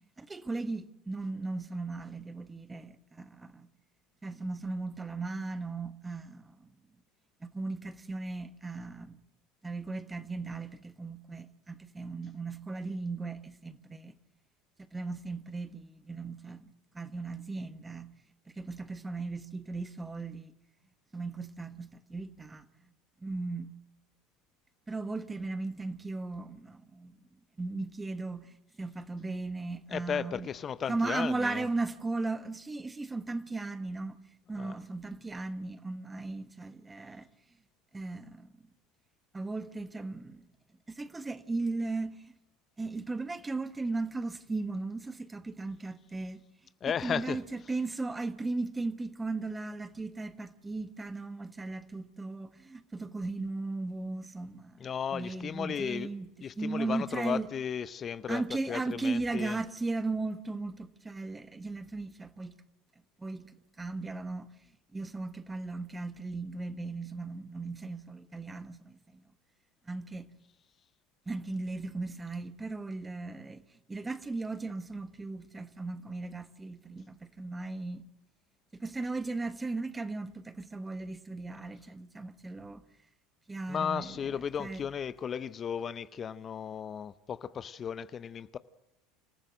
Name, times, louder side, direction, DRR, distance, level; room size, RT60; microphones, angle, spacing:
voice 1, 0.2-3.7 4.2-6.7 7.4-9.2 9.6-14.1 14.8-18.1 18.5-20.5 21.1-22.7 23.2-23.7 24.9-27.1 27.6-30.5 30.9-34.2 34.5-37.3 37.9-38.5 39.3-40.4 40.9-42.3 42.8-46.4 47.0-54.8 55.1-57.5 58.3-62.6 63.2-64.5 64.9-69.2 69.9-70.3 71.3-73.6 73.9-78.0 78.7-82.8 83.5-84.2 84.6-84.9, right 3 dB, 15° right, 1.3 m, -37 dB
voice 2, 29.9-31.7 34.6-34.8 46.8-47.4 54.8-56.1 56.4-58.4 58.7-59.6 83.7-88.6, left 7 dB, 35° left, 0.7 m, -35 dB
26.5 x 14.5 x 7.6 m
hypercardioid pair, 85°, 0 cm